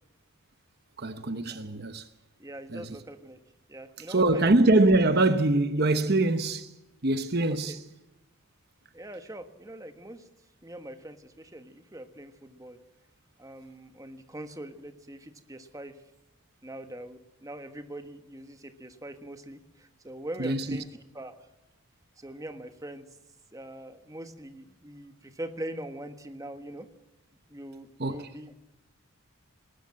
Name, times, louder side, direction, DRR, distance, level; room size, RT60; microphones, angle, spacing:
voice 1, 1.0-2.1 2.7-2.9 4.1-6.7 7.0-7.8 20.4-20.8 28.0-28.3, right 2 dB, 45° right, 1.0 m, -24 dB
voice 2, 2.4-3.4 3.7-4.4 7.5-7.8 8.9-10.3 10.6-12.8 13.4-16.0 16.6-20.9 21.1-21.4 22.2-23.1 23.5-26.9 27.5-28.5, right 1 dB, 15° right, 1.4 m, -42 dB
20.0 x 19.5 x 7.5 m
head